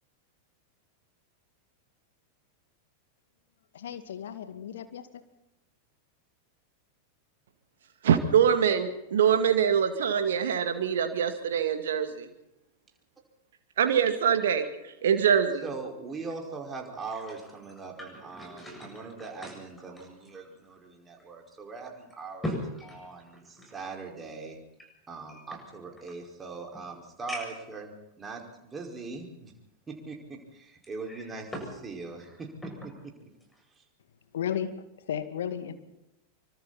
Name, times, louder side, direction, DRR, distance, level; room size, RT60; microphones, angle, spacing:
voice 1, 3.7-5.1 34.3-34.7 35.0-35.7, left 9 dB, 60° left, 9 dB, 2.3 m, -34 dB
voice 2, 8.0-12.3 13.8-14.7 15.0-15.7, right 8 dB, 60° right, 7 dB, 2.2 m, -24 dB
voice 3, 15.6-24.6 25.1-27.9 28.2-29.5 29.9-32.7, right 4 dB, 15° right, 1 dB, 5.3 m, -41 dB
sound 1, 16.8-20.9 21.2-21.3 21.9-23.9 24.7-26.2 26.7-26.8 27.3-27.7 28.5-28.6 30.8-31.8 32.1-33.0 33.4-33.6, equal, 5° left, 7.4 m, -41 dB
26.5 x 24.5 x 4.3 m, 0.90 s
figure-of-eight pair, 90°, 0 cm